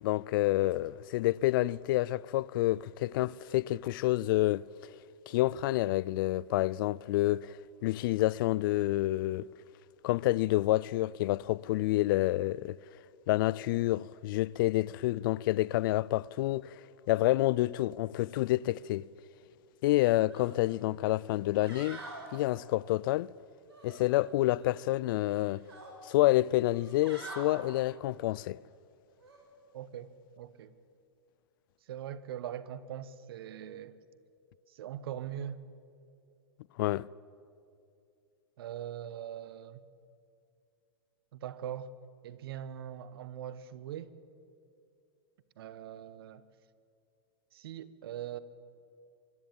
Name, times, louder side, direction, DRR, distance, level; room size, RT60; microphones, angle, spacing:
voice 1, 0.0-4.9 5.3-7.6 7.8-9.5 10.0-12.8 13.3-16.7 17.1-19.1 19.8-22.0 22.3-23.3 23.8-25.6 26.0-28.6 36.8-37.1, left 17 dB, 55° left, 0.4 m, -28 dB
sound 1, 20.3-20.5 20.9-21.0 21.5-22.3 23.7-24.7 25.0-25.9 26.6-27.5 29.2-29.4, right 2 dB, 85° right, 7.5 m, -47 dB
voice 2, 29.7-30.7 31.8-34.0 34.7-35.6 38.6-39.8 41.3-41.9 42.2-44.2 45.6-46.4 47.5-48.4, right 10 dB, 65° right, 1.1 m, -41 dB
24.5 x 13.0 x 8.9 m
hypercardioid pair, 115°, 13 cm